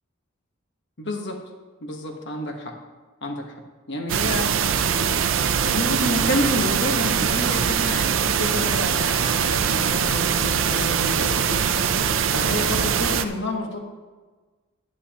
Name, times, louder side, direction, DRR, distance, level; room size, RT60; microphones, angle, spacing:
voice 1, 1.0-1.4 1.8-2.8 3.2-3.5 3.9-5.2 5.6-11.6 12.3-13.8, left 1 dB, 60° left, 3 dB, 1.3 m, -29 dB
sound 1, 4.1-13.2, right 7 dB, 70° right, 0.5 m, -22 dB
11.0 x 9.8 x 2.9 m, 1.3 s
head